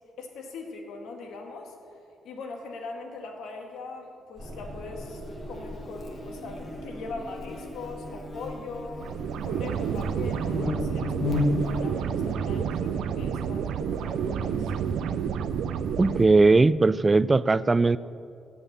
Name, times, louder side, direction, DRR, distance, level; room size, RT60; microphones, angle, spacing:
voice 1, 0.2-1.7 2.2-9.0 9.4-14.7, left 3 dB, 90° left, 2 dB, 1.8 m, -40 dB
Buzz, 4.4-16.5, left 2 dB, 40° left, 1.4 m, -36 dB
sound 1, 4.4-14.5, right 1 dB, 65° right, 2.0 m, -46 dB
sound 2, 9.0-16.2, right 8 dB, 85° right, 0.5 m, -29 dB
voice 2, 16.0-18.0, right 3 dB, 20° right, 17 dB, 0.3 m, -19 dB
17.0 x 5.7 x 7.3 m, 2.5 s
cardioid pair, 120°, 0 cm